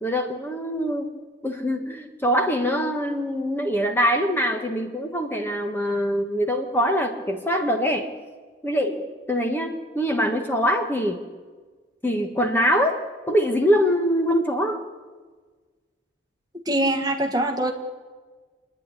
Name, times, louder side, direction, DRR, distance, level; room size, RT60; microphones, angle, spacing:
voice 1, 0.0-1.1 1.4-8.1 8.6-11.2 12.0-12.9 13.3-14.8, equal, 10° left, 3 dB, 1.4 m, -23 dB
voice 2, 16.7-17.7, right 1 dB, 20° right, 4 dB, 1.6 m, -23 dB
27.0 x 10.0 x 9.8 m, 1.4 s
head